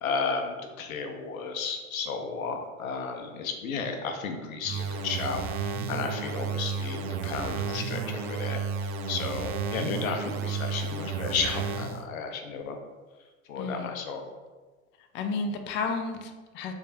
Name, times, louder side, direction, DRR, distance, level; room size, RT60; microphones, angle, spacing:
voice 1, 0.0-8.6 9.1-12.8 13.5-14.2, left 5 dB, 80° left, 5 dB, 0.8 m, -33 dB
sound 1, 4.6-12.1, right 5 dB, 45° right, 0.5 m, -32 dB
voice 2, 13.6-14.0 15.1-16.7, left 4 dB, 30° left, 5 dB, 0.4 m, -32 dB
3.5 x 3.3 x 4.1 m, 1.3 s
hypercardioid pair, 95°, 41 cm